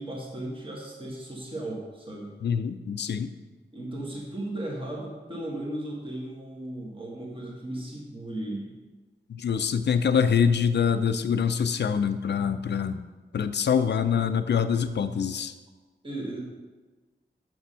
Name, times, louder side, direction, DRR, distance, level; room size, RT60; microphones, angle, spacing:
voice 1, 0.0-2.3 3.7-8.7 16.0-16.4, right 1 dB, 25° right, -3 dB, 1.5 m, -36 dB
voice 2, 2.4-3.3 9.3-13.0 13.3-15.5, left 7 dB, 65° left, 10 dB, 0.4 m, -25 dB
6.3 x 6.0 x 5.6 m, 1.2 s
wide cardioid pair, 110°, 19 cm